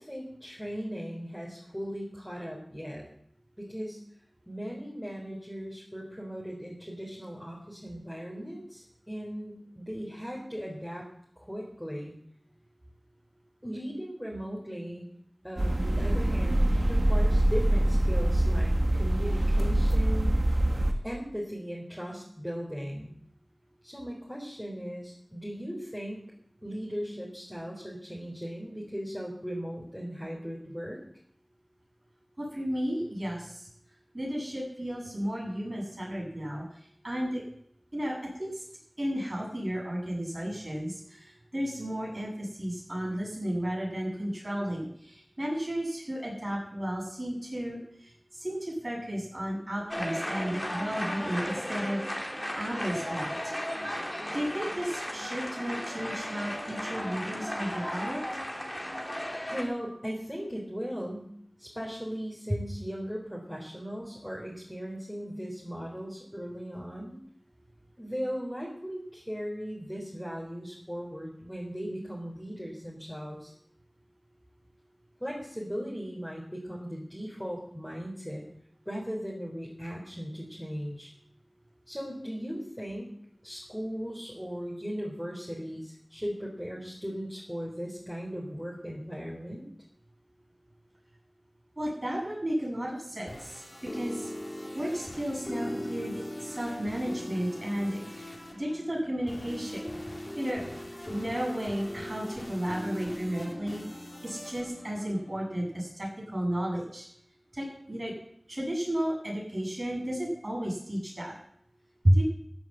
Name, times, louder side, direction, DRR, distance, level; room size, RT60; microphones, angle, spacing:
voice 1, 0.0-3.1 3.6-4.0 4.5-11.1 11.4-12.2 13.6-15.0 15.4-20.4 21.0-23.1 23.8-26.3 26.6-31.0 59.5-61.3 61.6-67.2 68.0-73.5 75.2-78.4 78.9-81.1 81.9-83.1 83.4-89.6, equal, ahead, -4 dB, 4.2 m, -37 dB
sound 1, 15.6-20.9, right 1 dB, 60° right, 1.9 m, -24 dB
voice 2, 32.4-33.7 34.1-36.6 37.0-37.4 37.9-38.6 39.0-53.5 54.3-58.2 91.8-93.6 93.9-94.3 94.7-98.3 98.6-99.9 100.4-100.6 101.1-107.1 107.5-108.1 108.5-111.3 112.0-112.2, equal, 45° right, -2 dB, 7.6 m, -33 dB
sound 2, 49.9-59.6, equal, 15° left, 2.8 m, -35 dB
sound 3, 93.1-105.9, left 1 dB, 35° left, 3.3 m, -40 dB
15.0 x 8.2 x 7.7 m, 0.68 s
wide cardioid pair, 40°, 0 cm